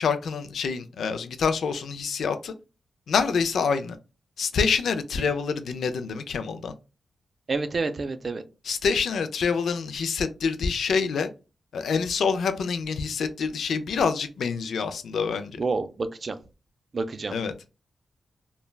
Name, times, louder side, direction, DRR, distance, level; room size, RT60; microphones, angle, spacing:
voice 1, 0.0-2.5 3.1-4.0 4.4-6.7 8.6-11.3 11.7-15.6 17.3-17.5, left 5 dB, 85° left, 0.3 m, -26 dB
voice 2, 7.5-8.4 15.6-16.4 16.9-17.3, right 3 dB, 45° right, 0.3 m, -28 dB
3.2 x 2.1 x 2.2 m
cardioid pair, 90°, 0 cm